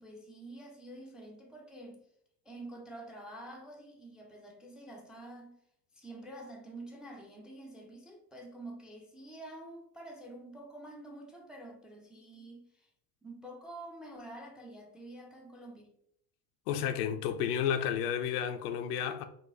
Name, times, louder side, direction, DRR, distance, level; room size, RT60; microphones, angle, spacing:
voice 1, 0.0-2.0 2.5-5.6 5.9-12.9 13.2-15.9, right 1 dB, ahead, 0.4 m, -48 dB
voice 2, 16.7-19.2, left 9 dB, 70° left, 0.6 m, -31 dB
4.0 x 2.1 x 2.6 m
hypercardioid pair, 75°, 49 cm